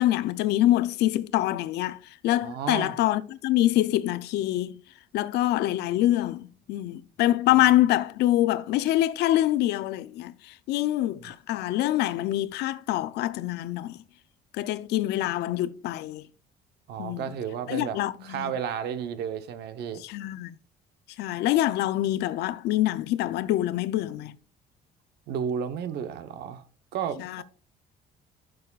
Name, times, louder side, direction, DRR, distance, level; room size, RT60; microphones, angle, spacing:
voice 1, 0.0-4.8 5.1-14.0 14.5-16.2 17.0-17.3 17.7-18.5 20.0-20.5 21.2-24.4 27.2-27.4, left 14 dB, 80° left, 0.6 m, -25 dB
voice 2, 2.4-2.9 16.9-18.0 18.2-20.0 25.3-26.6 26.9-27.4, right 8 dB, 75° right, 1.0 m, -32 dB
12.0 x 6.3 x 2.4 m
cardioid pair, 110°, 17 cm